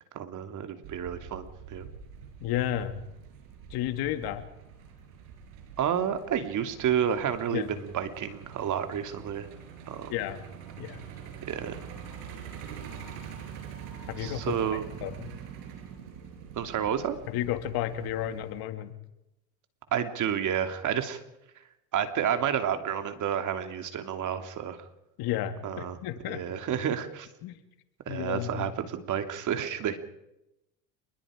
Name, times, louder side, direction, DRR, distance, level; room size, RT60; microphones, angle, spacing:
voice 1, 0.1-1.9 5.8-9.5 9.9-10.1 11.5-11.8 14.2-14.8 16.5-17.2 19.9-21.2 21.9-24.8 25.6-26.0 26.3-27.3 28.1-30.0, right 9 dB, 45° right, 7 dB, 2.7 m, -30 dB
Truck, 0.8-18.6, right 7 dB, 75° right, 5.6 m, -45 dB
voice 2, 2.4-3.0 3.7-4.4 7.5-7.7 10.1-10.4 10.8-11.1 14.1-15.3 17.3-18.9 25.2-26.4 27.4-27.6 28.1-28.7, left 12 dB, 60° left, 9 dB, 2.2 m, -32 dB
27.0 x 21.0 x 5.1 m, 0.88 s
supercardioid pair, 95°, 41 cm